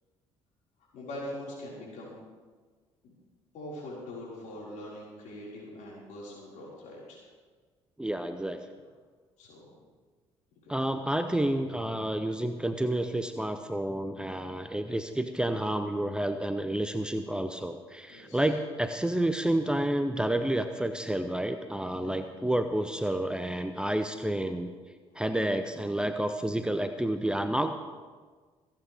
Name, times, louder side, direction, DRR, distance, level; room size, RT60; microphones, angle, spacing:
voice 1, 0.9-2.2 3.0-3.1 3.5-7.2 9.4-9.6 10.6-10.8 18.1-18.5 22.0-22.1 25.1-25.2, left 1 dB, 55° left, -5 dB, 5.6 m, -42 dB
voice 2, 8.0-8.7 10.7-24.7 25.1-27.7, right 1 dB, 5° right, 8 dB, 0.8 m, -30 dB
27.0 x 9.2 x 3.6 m, 1.5 s
figure-of-eight pair, 50°, 15 cm